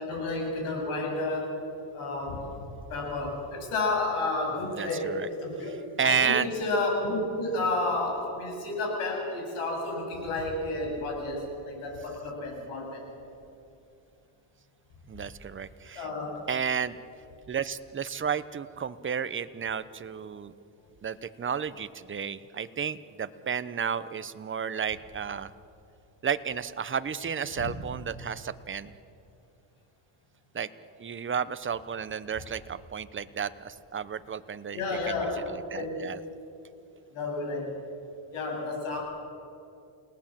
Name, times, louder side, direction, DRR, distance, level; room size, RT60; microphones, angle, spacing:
voice 1, 0.0-1.6 1.9-2.5 2.9-5.7 6.0-13.1 15.9-16.4 27.6-27.7 34.7-35.5 35.7-36.0 37.1-37.7 38.3-39.0, left 2 dB, 80° left, 1 dB, 8.0 m, -31 dB
voice 2, 4.6-5.3 6.0-6.5 15.1-16.0 16.5-17.0 17.5-20.5 21.0-25.5 26.2-28.9 30.5-30.7 31.0-34.8 35.1-36.2, right 7 dB, 25° right, 13 dB, 0.9 m, -32 dB
29.5 x 18.5 x 7.6 m, 2.7 s
cardioid pair, 115°, 49 cm